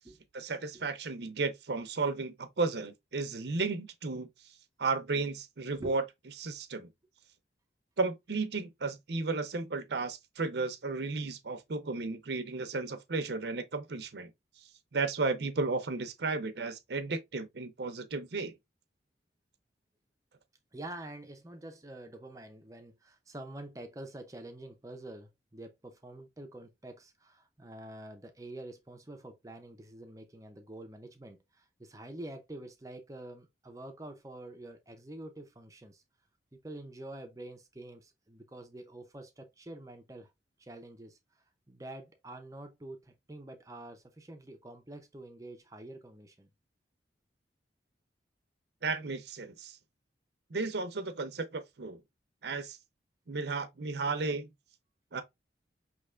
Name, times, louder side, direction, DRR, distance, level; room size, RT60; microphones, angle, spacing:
voice 1, 0.3-4.3 4.8-6.0 6.4-6.9 8.0-14.3 14.9-18.5 48.8-49.8 50.5-52.0 52.4-52.8 53.3-54.5 55.1-55.2, right 3 dB, 65° right, 0.7 m, -34 dB
voice 2, 20.7-36.0 36.6-40.3 40.6-41.2 41.7-46.5, right 1 dB, 20° right, 0.6 m, -47 dB
5.2 x 3.3 x 2.4 m
head